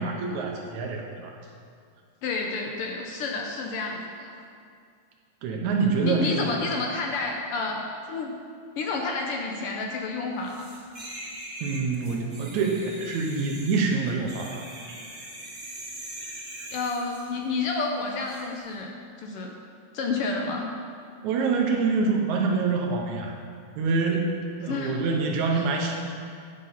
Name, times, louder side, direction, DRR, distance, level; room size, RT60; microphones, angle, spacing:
voice 1, 0.0-1.4 5.4-6.6 11.6-14.7 21.2-23.4 23.8-26.1, right 4 dB, 75° right, 2 dB, 2.1 m, -26 dB
voice 2, 2.2-4.3 6.0-7.8 8.1-8.4 8.8-10.7 16.7-19.5 19.9-20.7 24.6-25.0 25.6-25.7, left 4 dB, 80° left, 1 dB, 1.3 m, -30 dB
sound 1, 10.5-17.3 18.2-18.4, right 1 dB, 25° right, 2.2 m, -41 dB
9.8 x 6.7 x 5.5 m, 2.2 s
omnidirectional pair, 3.5 m